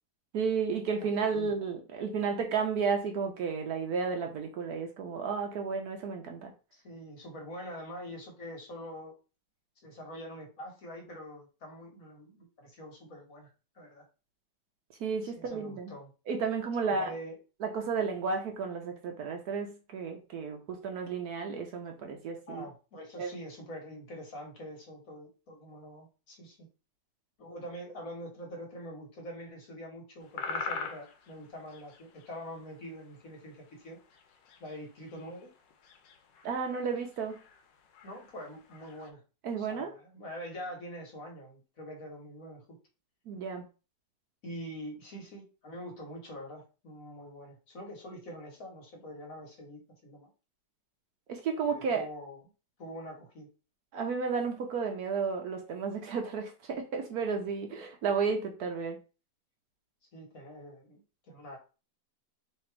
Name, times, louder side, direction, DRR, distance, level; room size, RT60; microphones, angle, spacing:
voice 1, 0.3-6.5 15.0-15.9 16.3-17.1 17.6-22.6 23.2-23.3 36.4-37.4 39.4-39.9 43.3-43.6 51.3-52.1 53.9-59.0, right 5 dB, 65° right, 1.1 m, -32 dB
voice 2, 1.0-1.5 6.7-9.1 9.8-13.5 13.7-14.0 15.2-16.1 16.9-17.4 22.5-26.7 27.4-34.0 34.6-35.5 38.0-39.2 39.6-42.8 44.4-50.3 51.7-52.4 52.8-53.5 60.1-61.0 61.3-61.6, equal, 50° left, 1.5 m, -45 dB
sound 1, 30.2-33.4 33.8-33.9 34.1-39.1, left 5 dB, 80° left, 1.4 m, -43 dB
3.3 x 2.9 x 4.5 m
omnidirectional pair, 1.9 m